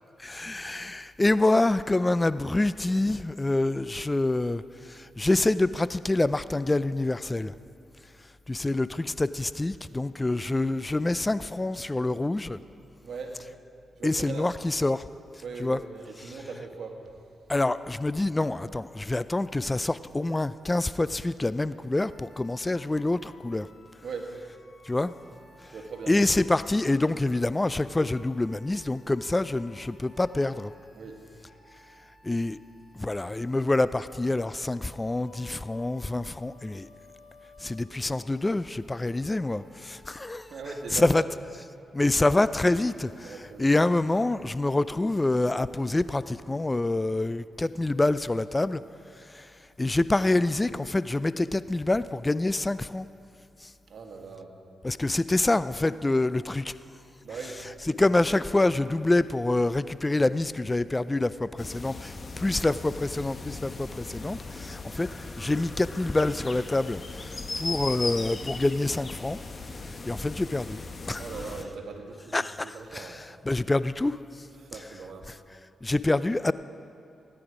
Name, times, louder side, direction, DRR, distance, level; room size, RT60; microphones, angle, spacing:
voice 1, 0.2-7.5 8.5-12.6 14.0-15.0 15.6-15.8 17.5-23.7 24.8-25.1 26.1-30.7 32.2-32.6 32.9-36.9 37.6-40.5 40.9-41.2 41.9-43.3 43.6-48.8 49.2-49.5 49.8-53.1 53.6-53.7 54.8-56.7 58.0-69.4 69.8-70.8 71.1-71.2 72.3-74.5 75.8-76.5, left 2 dB, 20° left, 15 dB, 0.3 m, -26 dB
voice 2, 13.0-13.4 13.9-14.6 15.4-17.2 24.0-24.3 25.7-26.1 30.9-31.2 40.4-41.3 43.2-43.7 53.9-54.6 57.2-57.7 71.2-73.3 74.6-75.3, right 4 dB, 65° right, 3 dB, 1.7 m, -40 dB
sound 1, 22.0-41.0, left 2 dB, 70° left, 2.5 m, -56 dB
sound 2, 61.6-71.6, left 3 dB, 40° left, 1.0 m, -38 dB
17.0 x 9.8 x 5.0 m, 2.6 s
supercardioid pair, 50°, 0 cm